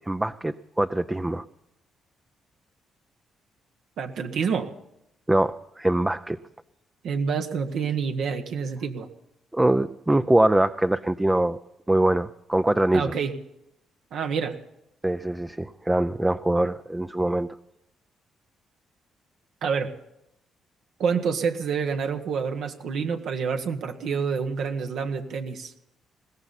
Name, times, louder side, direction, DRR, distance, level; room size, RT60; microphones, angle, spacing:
voice 1, 0.1-1.4 5.3-6.4 9.5-11.6 11.9-13.1 15.0-17.5, right 1 dB, 10° right, 9 dB, 0.5 m, -23 dB
voice 2, 4.0-4.7 7.0-9.1 12.9-13.4 14.1-14.6 19.6-19.9 21.0-25.7, right 6 dB, 75° right, 4 dB, 1.3 m, -27 dB
20.5 x 16.0 x 4.2 m, 0.83 s
cardioid pair, 90°, 0 cm